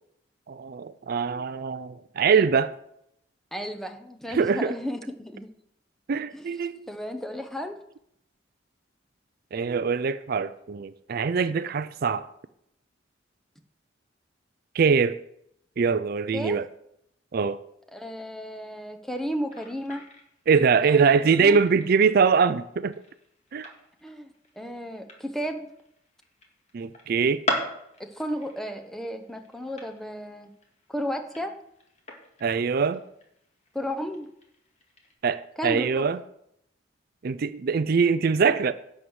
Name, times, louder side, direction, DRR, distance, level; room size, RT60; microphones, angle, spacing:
voice 1, 0.5-2.7 4.3-4.7 6.1-6.9 9.5-12.3 14.7-15.2 15.8-16.7 17.3-17.6 20.5-22.9 23.5-23.7 26.7-27.4 32.4-33.0 35.2-36.2 37.2-38.7, right 5 dB, 50° right, 13 dB, 0.4 m, -23 dB
voice 2, 3.5-5.5 6.3-6.6 6.9-7.8 16.3-16.6 17.9-20.0 20.8-21.1 21.4-21.9 24.0-24.3 24.6-25.7 28.0-30.5 30.9-31.6 33.7-34.3 35.6-36.1, equal, ahead, 5 dB, 0.8 m, -33 dB
sound 1, 19.5-35.1, left 2 dB, 35° left, 2.1 m, -40 dB
11.5 x 4.7 x 7.9 m, 0.76 s
head